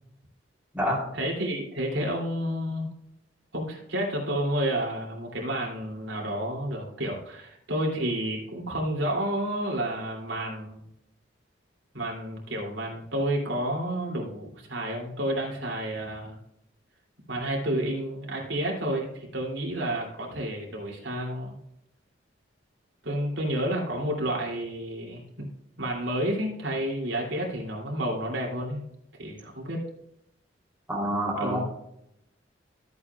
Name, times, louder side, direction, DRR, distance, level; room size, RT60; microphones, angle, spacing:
voice 1, 1.1-2.9 3.5-10.8 11.9-16.4 17.3-21.6 23.0-25.5 25.8-28.8 29.2-29.8 31.3-31.6, right 1 dB, 85° right, -1 dB, 2.9 m, -30 dB
voice 2, 30.9-31.6, equal, 10° right, -3 dB, 3.2 m, -27 dB
13.5 x 8.7 x 2.4 m, 0.79 s
head